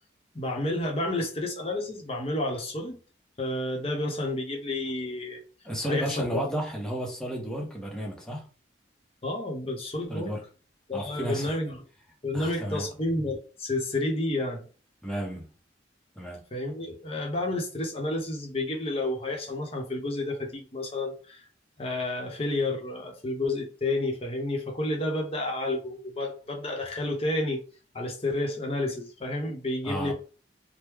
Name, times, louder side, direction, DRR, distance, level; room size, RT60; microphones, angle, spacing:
voice 1, 0.3-3.0 3.4-5.4 5.9-6.2 9.2-10.3 10.9-11.8 12.2-14.6 16.5-21.5 21.8-27.6 27.9-30.1, left 2 dB, 30° left, 0.8 m, -30 dB
voice 2, 5.7-8.5 10.1-10.4 10.9-11.6 12.3-12.9 15.0-15.5 16.2-16.4 29.8-30.1, equal, 5° left, 0.8 m, -32 dB
3.1 x 2.1 x 3.4 m
head